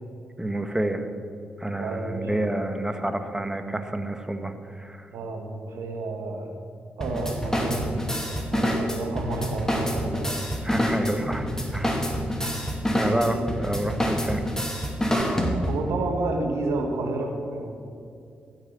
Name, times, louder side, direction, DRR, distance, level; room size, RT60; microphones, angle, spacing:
voice 1, 0.4-1.1 1.6-5.1 10.6-11.5 11.7-12.0 13.0-14.4, right 1 dB, 15° right, 8 dB, 1.4 m, -29 dB
voice 2, 1.7-2.3 5.1-6.5 7.0-10.4 11.1-11.4 12.2-12.6 13.0-13.4 15.2-17.7, right 2 dB, 75° right, 3 dB, 1.7 m, -31 dB
sound 1, 7.0-15.9, equal, 10° left, 2.5 m, -27 dB
15.0 x 6.6 x 7.5 m, 2.6 s
hypercardioid pair, 40°, 5 cm